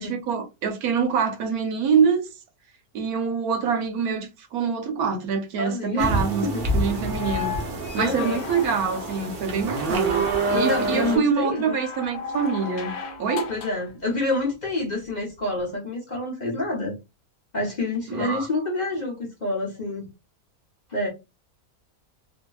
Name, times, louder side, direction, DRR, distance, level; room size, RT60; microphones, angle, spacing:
voice 1, 0.0-2.3 2.9-6.5 6.7-7.5 7.9-13.5 18.1-18.5, right 6 dB, 85° right, 1.2 m, -25 dB
voice 2, 5.6-6.7 8.0-8.4 10.5-11.8 13.5-16.9 17.5-20.1 20.9-21.1, left 2 dB, 40° left, 0.7 m, -28 dB
sound 1, 6.0-11.2, right 2 dB, 45° right, 0.8 m, -27 dB
sound 2, 7.1-9.6 11.4-13.9 15.5-15.6, left 7 dB, 70° left, 1.1 m, -35 dB
2.8 x 2.7 x 2.3 m
omnidirectional pair, 1.5 m